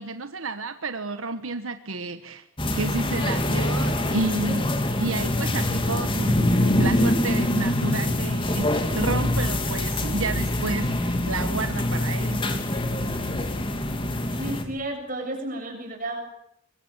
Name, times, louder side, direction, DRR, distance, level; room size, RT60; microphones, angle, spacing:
voice 1, 0.0-2.4 2.7-4.7 5.0-12.6, right 3 dB, 85° right, 9 dB, 1.4 m, -31 dB
sound 1, 2.6-14.6, left 1 dB, 25° left, 3.0 m, -24 dB
voice 2, 14.3-16.2, right 1 dB, 40° right, 4 dB, 7.5 m, -32 dB
24.5 x 22.5 x 8.9 m, 0.77 s
head